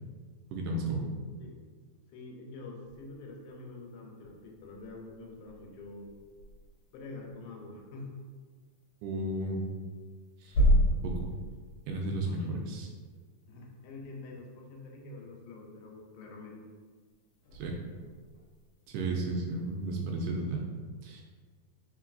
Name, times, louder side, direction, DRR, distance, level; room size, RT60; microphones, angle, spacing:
voice 1, 0.5-1.0 9.0-9.6 10.4-10.5 11.0-11.1 11.9-12.9 17.5-17.8 18.9-20.6 21.0-21.2, right 2 dB, 80° right, 0 dB, 2.0 m, -33 dB
voice 2, 2.1-6.1 6.9-8.1 12.3-12.7 13.5-16.7, left 3 dB, 85° left, 0 dB, 2.4 m, -46 dB
sound 1, 2.9-20.3, equal, 70° left, 1.7 m, -36 dB
4.6 x 3.6 x 2.5 m, 1.5 s
omnidirectional pair, 4.0 m